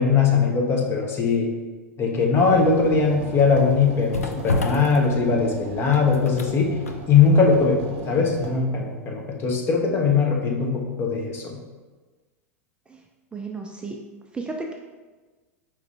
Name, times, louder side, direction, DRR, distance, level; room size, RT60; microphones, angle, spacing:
voice 1, 0.0-1.5 2.0-6.7 7.1-11.6, left 5 dB, 30° left, 0 dB, 0.9 m, -20 dB
sound 1, 2.3-8.5, right 3 dB, 50° right, 0.8 m, -37 dB
sound 2, 2.9-10.8 11.1-11.3, left 2 dB, 85° left, 0.4 m, -34 dB
voice 2, 13.3-14.0 14.3-14.7, right 3 dB, 15° right, 1 dB, 0.4 m, -33 dB
4.9 x 3.1 x 3.3 m, 1.3 s
figure-of-eight pair, 90°, 8 cm